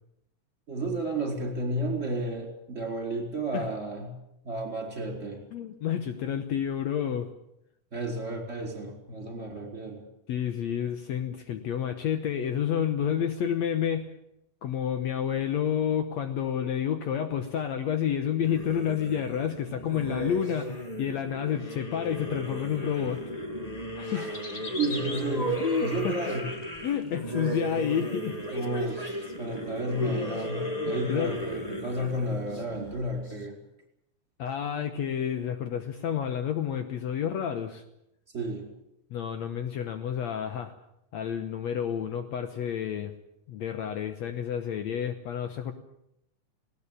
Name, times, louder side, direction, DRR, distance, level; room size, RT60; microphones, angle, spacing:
voice 1, 0.7-4.1 4.4-5.4 7.9-10.0 24.1-24.4 24.8-26.5 28.5-33.6 38.3-38.7, right 1 dB, 20° right, 2 dB, 4.8 m, -32 dB
voice 2, 5.5-7.3 10.3-14.1 14.6-23.2 24.0-24.3 25.6-26.4 26.8-28.4 30.0-30.3 30.9-31.4 34.4-37.8 39.1-40.7 41.1-43.1 43.5-45.7, left 9 dB, 65° left, 8 dB, 2.1 m, -30 dB
sound 1, 18.4-33.3, equal, 15° left, 2.2 m, -35 dB
sound 2, 24.3-26.1 26.5-27.0 27.4-27.5 28.3-28.4 28.7-28.8 29.8-29.9, left 3 dB, 30° left, 1.8 m, -40 dB
19.5 x 18.5 x 8.8 m, 0.80 s
omnidirectional pair, 3.6 m